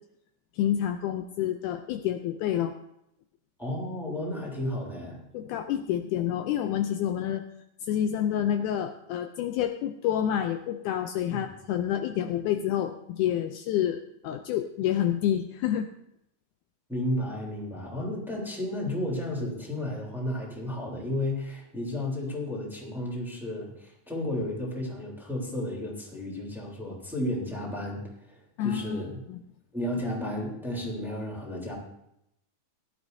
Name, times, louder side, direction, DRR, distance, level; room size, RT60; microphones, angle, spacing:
voice 1, 0.5-2.7 5.3-7.5 7.8-15.9 28.6-29.0 29.3-29.4, left 10 dB, 80° left, 7 dB, 2.0 m, -28 dB
voice 2, 3.6-5.2 11.4-11.5 16.9-29.2 29.7-31.8, left 1 dB, ahead, -3 dB, 3.1 m, -33 dB
18.5 x 12.5 x 2.7 m, 0.79 s
omnidirectional pair, 3.7 m